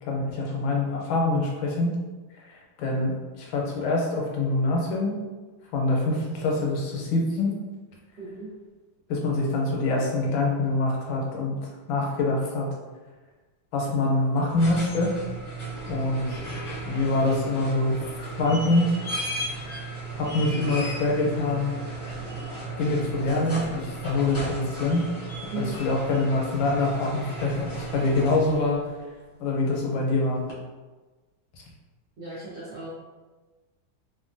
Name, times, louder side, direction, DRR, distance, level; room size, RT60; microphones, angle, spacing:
voice 1, 0.0-2.0 2.3-5.2 5.7-7.5 9.1-12.7 13.7-15.2 15.8-16.4 16.8-18.9 19.2-19.3 19.6-19.8 20.1-21.7 22.8-25.1 25.6-28.8 29.4-30.5, left 2 dB, 80° left, -2 dB, 1.4 m, -25 dB
voice 2, 8.2-8.5 25.5-25.8 32.2-32.9, right 2 dB, 80° right, -10 dB, 0.6 m, -35 dB
sound 1, 14.4-28.8 30.5-30.6, right 2 dB, 40° left, 0.7 m, -35 dB
3.4 x 2.1 x 2.5 m, 1.3 s
omnidirectional pair, 2.2 m